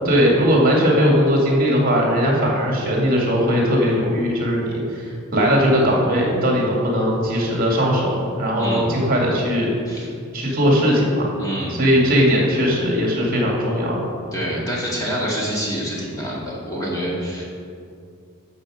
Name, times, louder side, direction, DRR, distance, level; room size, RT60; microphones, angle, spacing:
voice 1, 0.0-10.0 10.3-11.3 11.7-14.0, equal, 40° right, -2 dB, 2.4 m, -19 dB
voice 2, 8.6-8.9 9.9-10.1 11.4-11.8 14.3-17.4, equal, 15° left, -5 dB, 2.0 m, -26 dB
12.5 x 7.0 x 5.1 m, 2.3 s
head